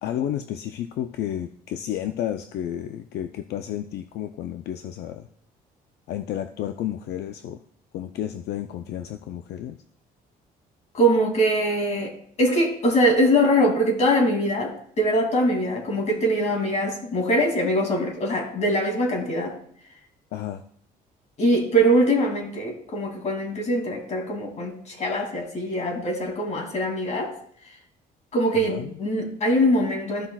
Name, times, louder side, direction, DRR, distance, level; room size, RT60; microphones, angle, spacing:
voice 1, 0.0-5.3 6.1-7.6 7.9-9.8 20.3-20.6 28.5-29.0, left 11 dB, 75° left, 8 dB, 0.6 m, -31 dB
voice 2, 10.9-19.5 21.4-27.3 28.3-30.3, equal, 40° left, 2 dB, 2.7 m, -22 dB
15.0 x 5.7 x 2.4 m, 0.62 s
cardioid pair, 110°, 17 cm